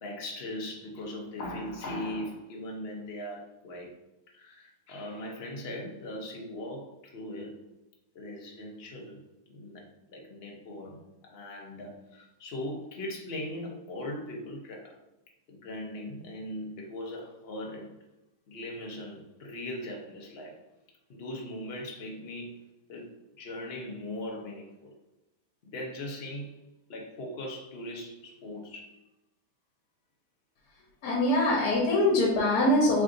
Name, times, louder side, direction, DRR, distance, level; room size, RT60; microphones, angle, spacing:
voice 1, 0.0-3.9 4.3-7.6 8.1-9.2 9.5-15.0 15.5-18.0 18.5-20.6 21.1-22.6 22.9-24.9 25.6-26.6 26.9-29.0, left 1 dB, 55° left, 0 dB, 0.7 m, -39 dB
voice 2, 31.0-33.0, left 1 dB, 75° left, -2 dB, 1.4 m, -23 dB
3.4 x 2.5 x 3.7 m, 0.89 s
omnidirectional pair, 1.7 m